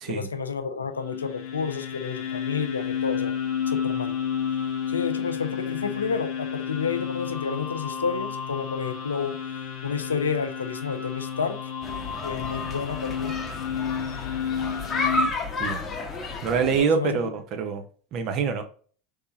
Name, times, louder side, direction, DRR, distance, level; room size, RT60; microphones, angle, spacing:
voice 1, 0.1-3.3 3.7-4.2 4.9-9.4 9.8-11.6 12.2-13.4 16.8-17.3, left 5 dB, 80° left, 0.4 m, -30 dB
sound 1, 0.9-15.3, left 8 dB, 50° left, 0.8 m, -31 dB
sound 2, 11.8-16.8, left 2 dB, 25° left, 0.9 m, -31 dB
voice 2, 16.4-17.8 18.1-18.6, right 6 dB, 45° right, 0.8 m, -25 dB
3.5 x 3.3 x 2.7 m
figure-of-eight pair, 80°, 0 cm